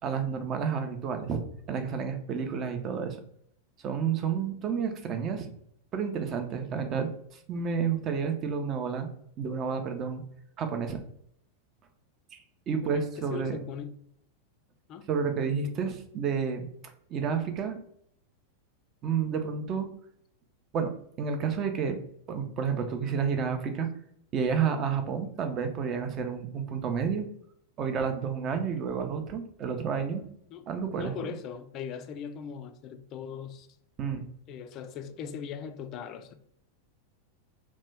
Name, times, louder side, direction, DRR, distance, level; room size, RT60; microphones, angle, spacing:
voice 1, 0.0-3.2 3.8-5.5 5.9-9.1 9.4-10.2 10.6-11.0 12.3-13.6 15.1-16.7 17.1-17.8 19.0-19.9 20.7-22.0 22.3-23.9 24.3-27.3 27.8-30.2 30.7-31.3 34.0-34.2, right 6 dB, 30° right, 6 dB, 0.5 m, -30 dB
voice 2, 12.7-14.0 14.9-15.0 30.5-30.7 30.9-33.7 34.5-36.3, left 7 dB, 35° left, 9 dB, 0.3 m, -39 dB
3.0 x 2.2 x 3.3 m, 0.69 s
figure-of-eight pair, 90°, 0 cm